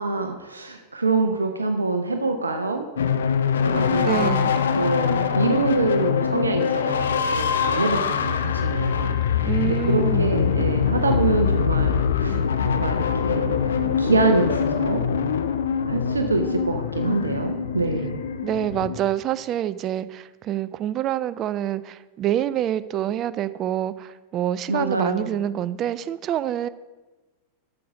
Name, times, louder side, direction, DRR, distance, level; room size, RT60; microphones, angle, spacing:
voice 1, 0.0-2.9 3.6-4.5 4.7-7.0 7.3-12.4 12.6-15.0 15.8-18.2 24.7-25.4, right 3 dB, 80° right, 6 dB, 0.6 m, -25 dB
sound 1, 3.0-19.0, left 7 dB, 65° left, 0.5 m, -23 dB
voice 2, 4.0-4.5 9.4-10.3 18.4-26.7, right 11 dB, 35° right, 16 dB, 0.4 m, -26 dB
8.4 x 6.5 x 5.9 m, 1.2 s
figure-of-eight pair, 90°, 0 cm